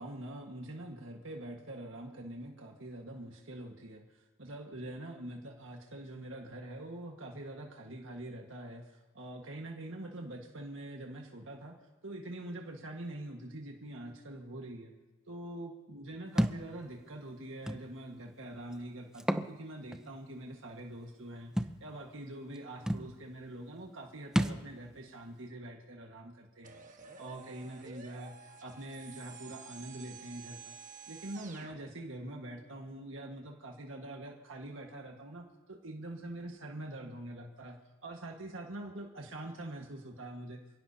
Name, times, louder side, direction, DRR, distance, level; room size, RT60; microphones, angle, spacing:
voice 1, 0.0-11.7 12.0-14.9 15.3-26.8 27.2-30.7 31.1-40.6, right 1 dB, 80° right, 1 dB, 1.7 m, -44 dB
Thump thud, 16.4-16.6 17.7-17.8 19.1-19.5 19.9-20.0 21.6-21.8 22.5-22.6 22.9-23.1 24.3-24.6, equal, 5° right, 0.6 m, -30 dB
sound 1, 26.6-31.8, right 5 dB, 40° right, 1.5 m, -51 dB
27.5 x 17.0 x 2.9 m, 1.2 s
head